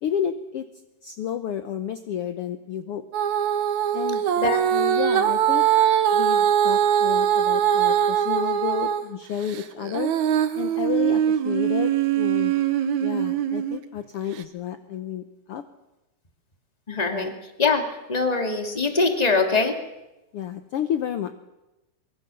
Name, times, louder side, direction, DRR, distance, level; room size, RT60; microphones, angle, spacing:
voice 1, 0.0-0.7 1.0-3.0 3.9-4.2 4.7-5.7 6.1-10.1 10.6-12.5 13.0-15.6 17.1-17.3 20.3-21.3, left 9 dB, 70° left, 9 dB, 1.4 m, -31 dB
Female singing, 3.1-9.1 9.5-13.8 14.4-14.5, right 9 dB, 65° right, 2.4 m, -22 dB
voice 2, 16.9-17.3 17.6-17.8 18.1-19.8, left 4 dB, 15° left, 5 dB, 2.0 m, -22 dB
24.5 x 22.5 x 7.0 m, 1.0 s
omnidirectional pair, 3.8 m